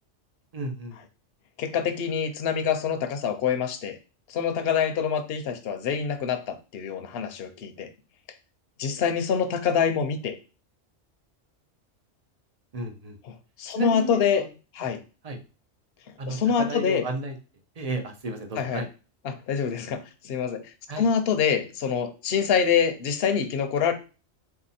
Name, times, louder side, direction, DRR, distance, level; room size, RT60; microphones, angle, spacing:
voice 1, 0.5-1.0 12.7-13.2 13.7-14.5 15.2-15.4 16.2-17.4 17.8-18.9 20.9-21.1, right 2 dB, 40° right, 5 dB, 0.6 m, -33 dB
voice 2, 1.6-4.0 4.3-7.9 8.8-10.3 13.6-14.4 14.7-15.0 16.3-17.0 18.6-18.8 19.2-20.6 21.0-23.9, left 7 dB, 60° left, 8 dB, 0.8 m, -25 dB
4.0 x 2.8 x 4.1 m, 0.33 s
omnidirectional pair, 1.3 m